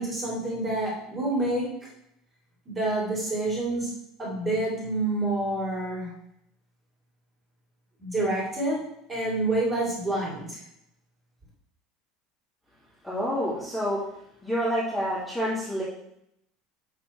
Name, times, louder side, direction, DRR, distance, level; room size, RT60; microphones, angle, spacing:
voice 1, 0.0-1.9 2.6-3.9 4.2-6.1 8.0-8.8 9.1-10.6, right 2 dB, 15° right, -4 dB, 2.9 m, -28 dB
voice 2, 13.0-14.0 14.4-15.8, equal, 5° left, -11 dB, 2.5 m, -28 dB
7.4 x 7.0 x 4.4 m, 0.77 s
cardioid pair, 180°, 0 cm